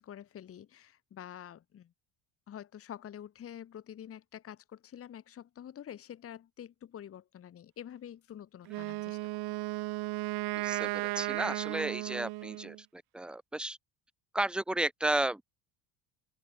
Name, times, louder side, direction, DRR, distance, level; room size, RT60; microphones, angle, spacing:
voice 1, 0.0-1.9 2.5-9.2 9.7-9.8, left 10 dB, 30° left, 1.3 m, -47 dB
Wind instrument woodwind instrument, 8.7-12.8, right 21 dB, 60° right, 0.6 m, -35 dB
voice 2, 10.5-13.8 14.3-15.4, right 1 dB, ahead, 1.0 m, -33 dB
cardioid pair, 155°, 45 cm